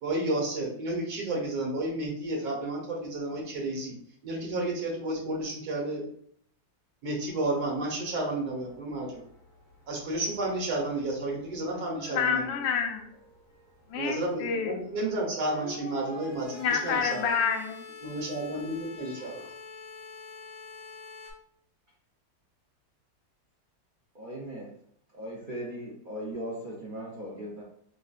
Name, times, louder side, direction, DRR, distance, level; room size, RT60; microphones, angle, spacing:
voice 1, 0.0-4.0 4.2-6.1 7.0-9.2 9.9-12.5 13.9-17.4 18.0-19.4, right 2 dB, 60° right, -2 dB, 1.5 m, -31 dB
sound 1, 7.2-21.3, left 3 dB, 50° left, 0.9 m, -48 dB
voice 2, 12.1-13.1 13.9-14.7 16.5-17.8, left 6 dB, 90° left, 5 dB, 1.3 m, -28 dB
voice 3, 19.0-19.5 24.1-24.7 25.1-27.6, right 1 dB, 85° right, -5 dB, 0.4 m, -39 dB
5.4 x 2.5 x 2.4 m, 0.64 s
omnidirectional pair, 2.0 m